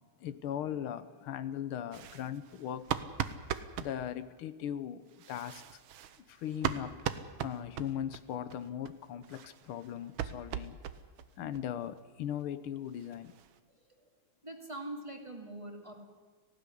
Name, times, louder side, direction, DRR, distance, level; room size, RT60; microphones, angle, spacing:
voice 1, 0.2-2.9 3.8-5.8 6.3-6.9 7.4-10.8 11.4-13.3, left 10 dB, 85° left, 13 dB, 1.8 m, -39 dB
sound 1, 1.9-3.9 5.1-8.2 8.5-8.6 8.9-9.0 9.2-11.3 11.5-11.7 12.0-12.1 12.4-12.5 12.8-13.6, right 9 dB, 75° right, 1.7 m, -39 dB
voice 2, 14.4-16.0, right 1 dB, 15° right, 2 dB, 2.4 m, -43 dB
18.5 x 16.0 x 9.9 m, 1.5 s
omnidirectional pair, 2.3 m